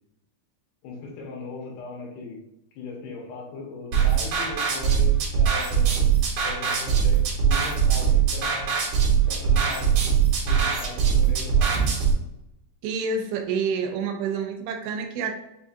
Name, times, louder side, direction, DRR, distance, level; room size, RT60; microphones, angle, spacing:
voice 1, 0.8-2.4 2.8-6.0 6.4-8.7 9.3-11.8, left 3 dB, 85° left, -1 dB, 2.9 m, -38 dB
sound 1, 3.9-12.1, right 7 dB, 65° right, 1.9 m, -21 dB
voice 2, 12.8-15.4, right 5 dB, 80° right, 4 dB, 2.4 m, -28 dB
6.3 x 2.5 x 2.6 m, 0.86 s
omnidirectional pair, 4.5 m